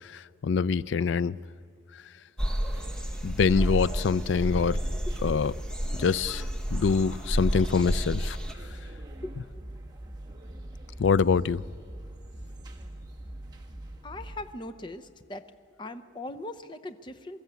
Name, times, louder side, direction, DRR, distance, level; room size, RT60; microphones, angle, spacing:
voice 1, 0.0-1.4 3.2-4.8 5.2-5.5 6.0-6.4 6.7-8.4 11.0-11.6, left 5 dB, 65° left, 0.4 m, -25 dB
sound 1, 2.4-8.5, equal, 5° left, 1.1 m, -31 dB
sound 2, 2.4-14.5, right 1 dB, 20° right, 1.4 m, -43 dB
voice 2, 14.0-15.4 15.8-17.4, left 2 dB, 25° left, 0.7 m, -40 dB
23.0 x 13.5 x 8.3 m
head